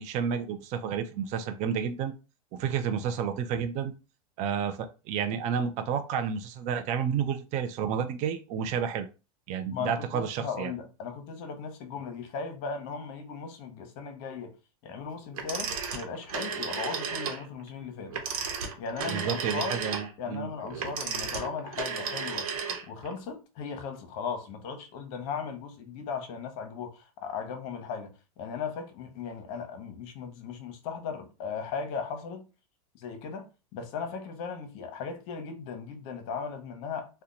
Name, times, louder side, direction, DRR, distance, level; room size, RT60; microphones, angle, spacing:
voice 1, 0.0-2.1 2.5-3.9 4.4-9.1 9.5-10.7 19.1-20.5, right 7 dB, 40° right, 0.5 m, -30 dB
voice 2, 9.7-14.5 14.8-18.2 18.8-19.8 20.2-22.5 22.9-32.4 32.9-33.5 33.7-37.2, left 6 dB, 50° left, 0.9 m, -37 dB
Telephone, 15.3-17.4 18.1-23.1, right 6 dB, 70° right, 1.1 m, -34 dB
2.8 x 2.2 x 3.8 m
hypercardioid pair, 120°, 19 cm